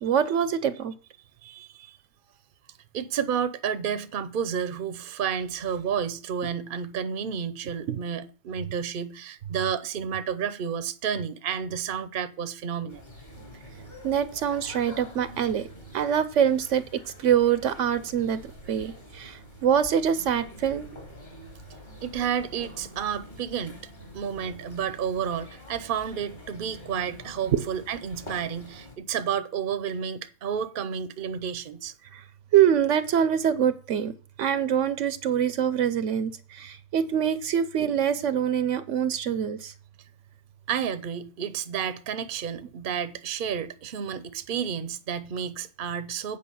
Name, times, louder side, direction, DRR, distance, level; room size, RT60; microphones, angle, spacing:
voice 1, 0.0-0.9 7.9-8.0 14.0-15.7 15.9-18.4 18.7-20.9 27.5-27.6 32.1-32.2 32.5-34.1 34.4-39.7, right 9 dB, 80° right, 1.0 m, -24 dB
voice 2, 1.4-1.9 2.9-13.0 22.0-23.8 24.1-31.9 40.7-46.4, right 8 dB, 50° right, 0.8 m, -31 dB
sound 1, 12.9-28.9, left 1 dB, 40° left, 2.9 m, -46 dB
8.6 x 5.0 x 7.0 m
omnidirectional pair, 1.3 m